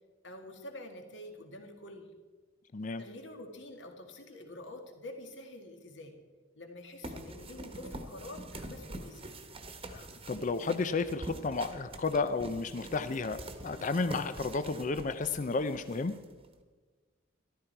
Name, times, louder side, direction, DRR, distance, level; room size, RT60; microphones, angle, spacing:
voice 1, 0.2-2.1 3.0-6.2 6.5-9.3, left 1 dB, 65° left, 4 dB, 2.0 m, -47 dB
voice 2, 2.7-3.0 9.9-16.1, left 4 dB, 40° left, 11 dB, 0.5 m, -32 dB
sound 1, 7.0-16.6, right 1 dB, 30° right, 1.2 m, -45 dB
14.0 x 12.5 x 4.5 m, 1.4 s
head